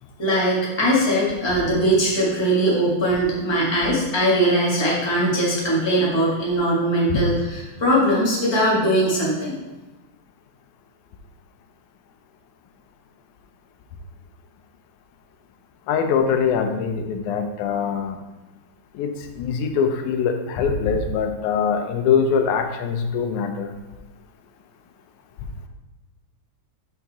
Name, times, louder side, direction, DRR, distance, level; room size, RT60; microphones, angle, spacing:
voice 1, 0.2-9.6, right 1 dB, 15° left, -5 dB, 1.0 m, -20 dB
voice 2, 15.9-18.2 18.9-23.7, left 6 dB, 90° left, 6 dB, 2.2 m, -23 dB
5.8 x 5.8 x 4.1 m, 1.1 s
omnidirectional pair, 3.4 m